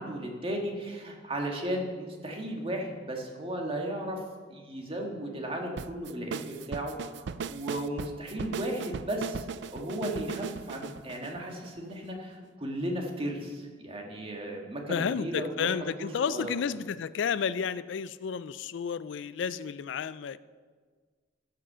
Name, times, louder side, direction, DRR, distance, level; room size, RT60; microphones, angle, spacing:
voice 1, 0.0-4.2 4.5-9.5 9.7-15.7 16.3-16.5, right 1 dB, 30° right, 1 dB, 1.8 m, -35 dB
sound 1, 5.8-12.1, right 5 dB, 65° right, 0.4 m, -38 dB
voice 2, 14.9-20.4, left 6 dB, 70° left, 16 dB, 0.4 m, -31 dB
14.5 x 5.8 x 6.8 m, 1.5 s
head